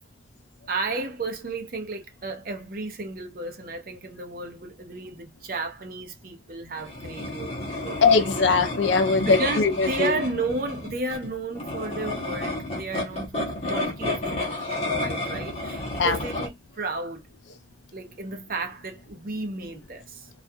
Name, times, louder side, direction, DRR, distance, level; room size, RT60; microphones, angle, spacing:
voice 1, 0.7-7.5 7.8-8.0 9.2-17.2 17.9-20.3, right 3 dB, 50° right, 0.6 m, -33 dB
sound 1, 6.8-16.5, left 2 dB, 35° left, 0.8 m, -31 dB
voice 2, 8.0-10.2 16.0-16.2, left 4 dB, 80° left, 0.5 m, -21 dB
2.4 x 2.2 x 2.6 m
head